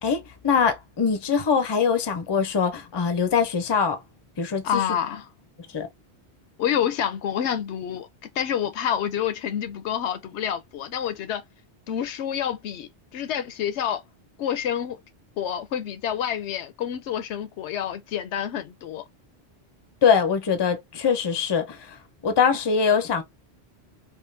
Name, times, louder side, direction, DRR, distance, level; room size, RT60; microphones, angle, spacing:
voice 1, 0.0-4.0 4.4-4.8 5.7-5.9 20.0-22.0 22.2-23.2, left 6 dB, 30° left, 0.5 m, -23 dB
voice 2, 4.6-5.2 6.6-8.1 8.4-11.4 11.9-14.0 14.4-15.0 15.4-19.0, left 9 dB, 85° left, 0.9 m, -28 dB
3.6 x 2.4 x 2.5 m
omnidirectional pair, 1.1 m